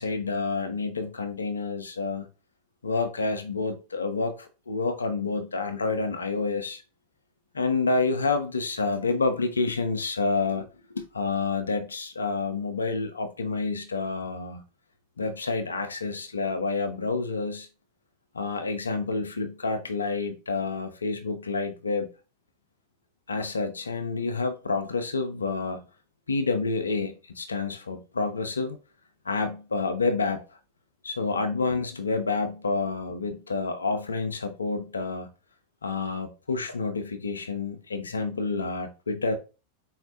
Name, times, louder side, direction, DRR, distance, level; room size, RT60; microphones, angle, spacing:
voice 1, 0.0-2.3 2.8-4.3 4.7-6.8 7.5-10.7 10.9-14.6 15.2-17.7 18.3-22.1 23.3-25.8 26.3-28.8 29.3-30.4 31.0-35.3 35.8-39.4, left 3 dB, 75° left, 0.4 m, -28 dB
4.1 x 2.0 x 2.6 m
figure-of-eight pair, 90°, 0 cm